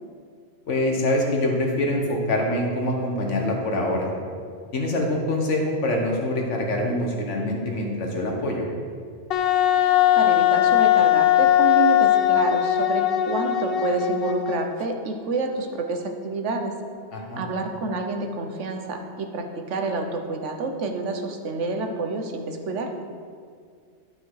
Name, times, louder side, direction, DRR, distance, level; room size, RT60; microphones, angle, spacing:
voice 1, 0.7-4.1 4.7-8.7 17.1-17.4, left 1 dB, 85° left, 1 dB, 1.6 m, -25 dB
Wind instrument woodwind instrument, 9.3-14.8, left 12 dB, 65° left, 0.7 m, -19 dB
voice 2, 10.1-16.7 17.4-23.1, right 3 dB, 80° right, 5 dB, 1.2 m, -28 dB
11.5 x 5.5 x 4.8 m, 2.1 s
omnidirectional pair, 1.2 m